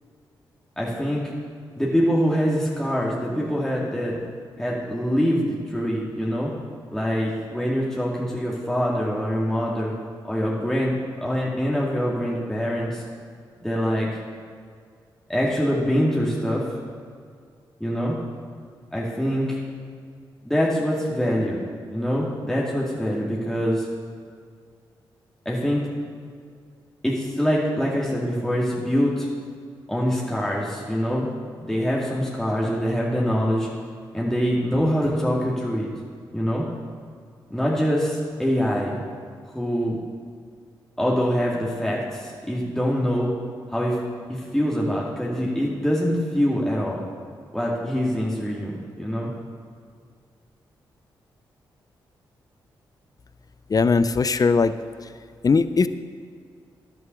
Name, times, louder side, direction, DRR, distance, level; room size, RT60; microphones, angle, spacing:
voice 1, 0.8-1.3 1.8-4.2 4.6-6.5 6.9-9.9 10.3-13.0 13.6-14.1 15.3-16.7 17.8-18.2 18.9-19.6 20.5-21.6 21.9-23.9 25.5-25.8 27.0-29.3 29.9-31.3 31.6-33.7 34.1-35.9 36.3-36.6 37.5-39.0 39.5-40.0 41.0-43.3 43.7-44.0 44.3-47.0 47.5-49.3, equal, 5° left, -5 dB, 2.2 m, -24 dB
voice 2, 53.7-54.7 55.4-55.9, left 4 dB, 40° left, 13 dB, 0.6 m, -19 dB
11.0 x 6.1 x 7.0 m, 2.1 s
supercardioid pair, 40°, 10 cm